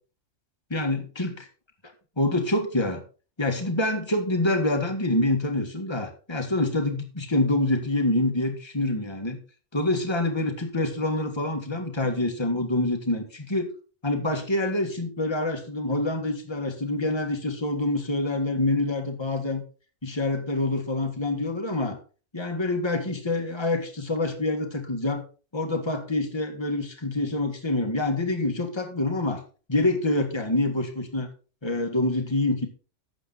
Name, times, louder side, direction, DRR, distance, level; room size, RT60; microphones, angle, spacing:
voice 1, 0.7-1.5 2.2-3.0 3.4-9.4 9.7-13.7 14.0-19.6 20.0-22.0 22.3-25.2 25.5-29.4 29.7-31.3 31.6-32.7, left 2 dB, 20° left, 4 dB, 1.9 m, -26 dB
12.5 x 8.1 x 4.1 m, 0.36 s
omnidirectional pair, 1.3 m